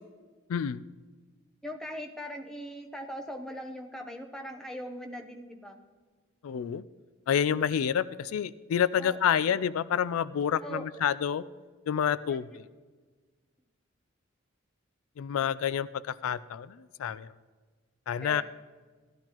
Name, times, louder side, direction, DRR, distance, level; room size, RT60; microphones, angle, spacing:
voice 1, 0.5-0.8 6.4-6.9 7.3-11.4 11.9-12.6 15.2-17.3 18.1-18.4, left 8 dB, 85° left, 17 dB, 0.3 m, -28 dB
voice 2, 1.6-5.8 9.0-9.5 10.6-11.1 12.3-12.4 18.2-18.4, equal, 5° left, 3 dB, 0.8 m, -40 dB
16.0 x 12.0 x 3.0 m, 1.4 s
head